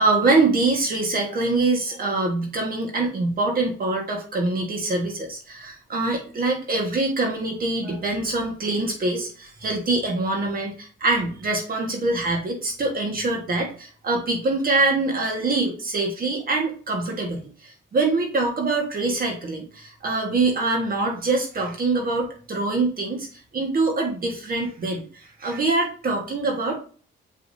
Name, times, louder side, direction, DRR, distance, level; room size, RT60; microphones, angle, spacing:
voice 1, 0.0-23.3 23.5-26.8, right 3 dB, 45° right, 1 dB, 1.7 m, -24 dB
7.4 x 4.9 x 2.8 m, 0.42 s
cardioid pair, 90°, 20 cm